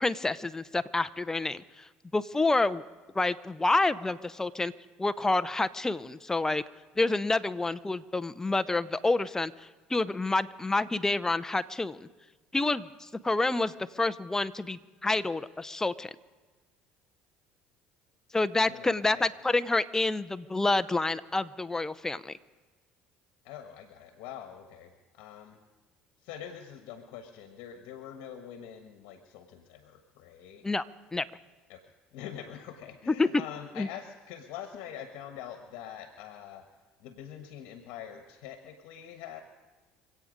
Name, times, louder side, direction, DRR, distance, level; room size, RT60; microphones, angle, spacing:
voice 1, 0.0-1.9 2.1-2.8 3.1-4.7 5.0-6.6 7.0-12.1 12.5-16.1 18.3-22.4 30.6-30.8 31.1-31.2 33.1-33.3 33.8-33.9, left 2 dB, 15° left, 15 dB, 0.6 m, -28 dB
voice 2, 18.7-19.3 23.4-25.6 26.2-30.7 31.7-36.6 37.0-39.4, left 9 dB, 75° left, 6 dB, 1.2 m, -44 dB
26.0 x 8.7 x 5.2 m, 1.3 s
supercardioid pair, 80°, 4 cm